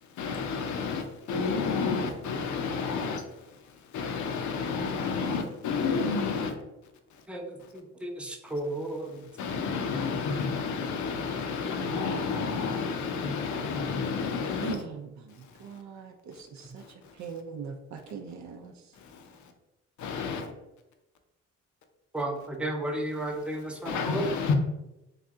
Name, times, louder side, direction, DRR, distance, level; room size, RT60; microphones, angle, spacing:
voice 1, 0.0-6.5 7.1-7.2 9.3-14.8 15.4-15.7 16.8-17.1 18.9-19.5 20.0-20.5 23.8-24.5, left 5 dB, 70° left, 5 dB, 0.7 m, -31 dB
voice 2, 7.3-9.2 22.1-24.3, right 1 dB, 5° right, 2 dB, 0.6 m, -33 dB
voice 3, 14.6-16.8 17.1-18.9, right 6 dB, 65° right, 4 dB, 0.5 m, -41 dB
3.2 x 2.7 x 3.5 m, 0.95 s
cardioid pair, 90°, 30 cm